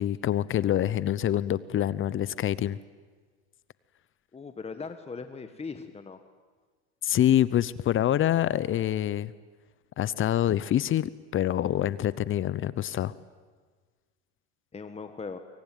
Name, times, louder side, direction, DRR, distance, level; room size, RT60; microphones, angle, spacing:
voice 1, 0.0-2.8 7.0-9.3 10.0-13.1, left 11 dB, 35° left, 19 dB, 0.9 m, -26 dB
voice 2, 4.3-6.2 14.7-15.4, left 4 dB, 20° left, 8 dB, 1.6 m, -39 dB
26.0 x 23.5 x 9.4 m, 1.5 s
supercardioid pair, 100°, 34 cm